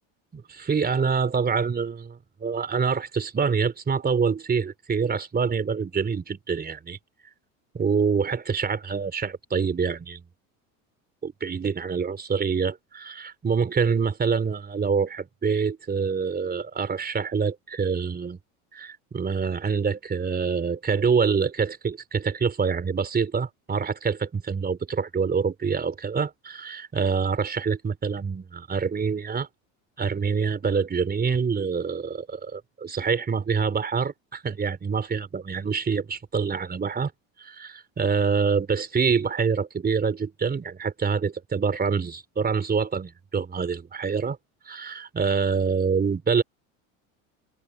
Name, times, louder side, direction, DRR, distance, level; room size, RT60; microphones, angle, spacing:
voice 1, 0.3-7.0 7.7-10.2 11.2-18.4 18.7-29.5 30.0-37.1 37.4-44.4 44.7-46.4, right 5 dB, 20° right, 4.2 m, -26 dB
supercardioid pair, 110°, 41 cm